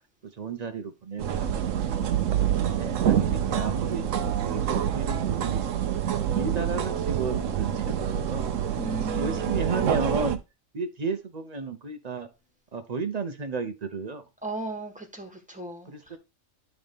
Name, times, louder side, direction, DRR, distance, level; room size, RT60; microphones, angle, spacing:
voice 1, 0.4-1.7 2.1-8.5 9.0-10.4 10.7-12.3 12.7-14.2 15.9-16.2, right 4 dB, 40° right, 0.6 m, -33 dB
sound 1, 1.2-10.4, right 9 dB, 70° right, 1.0 m, -27 dB
voice 2, 8.8-9.6 14.4-15.9, right 2 dB, 5° right, 1.3 m, -36 dB
10.5 x 4.0 x 3.5 m
omnidirectional pair, 1.4 m